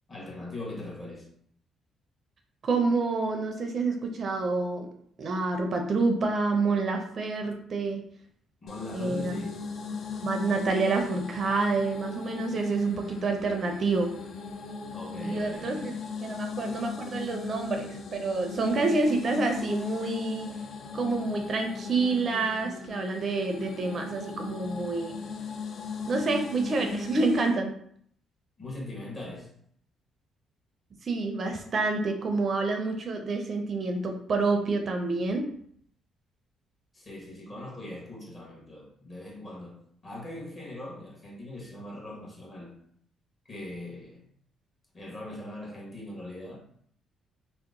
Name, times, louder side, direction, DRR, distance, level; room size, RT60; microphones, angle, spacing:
voice 1, 0.1-1.3 8.6-9.6 14.9-15.9 28.6-29.5 36.9-42.8 43.5-44.2 44.9-46.6, left 1 dB, 30° left, -3 dB, 1.2 m, -41 dB
voice 2, 2.6-4.9 5.2-8.0 8.9-9.3 10.2-14.1 15.2-20.5 20.9-25.2 26.1-27.7 31.0-35.5, right 3 dB, 45° right, 4 dB, 0.4 m, -28 dB
sound 1, 8.7-27.6, left 5 dB, 55° left, 0.4 m, -38 dB
2.8 x 2.0 x 3.6 m, 0.64 s
cardioid pair, 110°, 0 cm